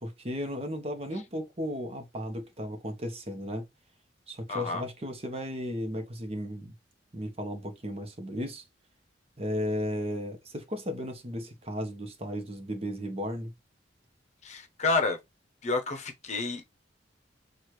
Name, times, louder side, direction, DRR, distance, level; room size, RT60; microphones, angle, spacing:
voice 1, 0.0-3.6 4.3-6.7 7.1-8.6 9.4-13.5, equal, 35° right, 1.0 m, -35 dB
voice 2, 4.5-4.8 14.4-15.2 15.6-16.7, left 3 dB, 40° left, 0.8 m, -29 dB
6.3 x 2.5 x 3.0 m
head